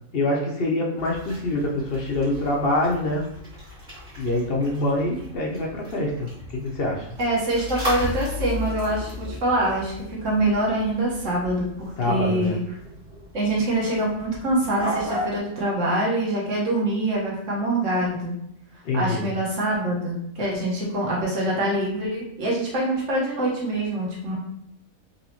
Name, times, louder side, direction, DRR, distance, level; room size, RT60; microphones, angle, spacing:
voice 1, 0.1-3.3 4.2-7.1 12.0-12.5 18.8-19.2, left 1 dB, 55° left, 0 dB, 0.7 m, -25 dB
sound 1, 1.0-15.4, left 1 dB, 35° right, 1.6 m, -36 dB
voice 2, 7.2-12.6 13.3-18.4 18.9-24.3, right 1 dB, 60° right, -4 dB, 1.5 m, -25 dB
4.0 x 3.1 x 2.9 m, 0.75 s
omnidirectional pair, 1.5 m